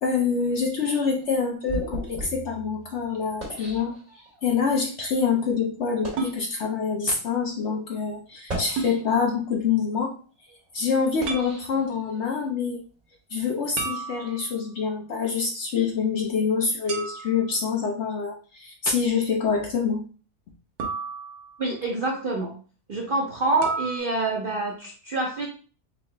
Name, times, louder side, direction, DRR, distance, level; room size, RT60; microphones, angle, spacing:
voice 1, 0.0-3.9 4.4-10.1 10.7-12.8 13.3-20.0, left 5 dB, 60° left, 0 dB, 0.8 m, -26 dB
sound 1, 0.8-4.5 5.2-5.3 5.9-6.4 7.2-7.3 8.3-9.4 9.9-12.4, right 2 dB, 25° right, 2.0 m, -38 dB
sound 2, 6.2-6.4 8.8-9.0 11.3-11.5 13.8-14.7 16.9-17.5 20.8-21.7 23.6-24.0, right 4 dB, 80° right, 1.3 m, -32 dB
voice 2, 21.6-22.5 22.9-25.5, right 2 dB, 55° right, -1 dB, 0.6 m, -26 dB
3.9 x 2.8 x 3.2 m, 0.39 s
omnidirectional pair, 1.6 m